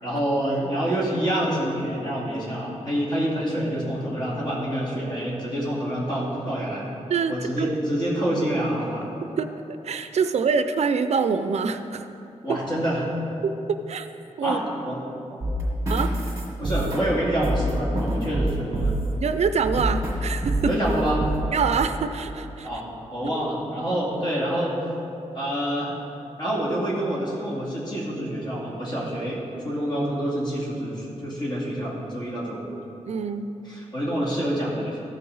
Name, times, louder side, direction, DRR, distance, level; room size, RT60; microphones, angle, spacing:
voice 1, 0.0-6.9 7.3-9.1 12.4-13.1 14.4-15.0 15.3-15.4 16.6-19.0 20.6-21.3 22.6-24.7 25.3-26.0 26.4-32.6 33.7-35.0, right 1 dB, 35° left, -6 dB, 2.3 m, -27 dB
voice 2, 7.1-7.7 9.4-12.1 13.4-14.1 14.4-14.6 15.9-16.1 19.2-20.7 21.5-22.7 33.1-33.5, right 5 dB, 65° right, 10 dB, 0.4 m, -25 dB
sound 1, 15.4-19.2 19.6-20.2 20.4-21.4 21.7-21.8, right 1 dB, 25° right, 1.7 m, -26 dB
14.0 x 5.6 x 4.0 m, 2.9 s
wide cardioid pair, 155°, 12 cm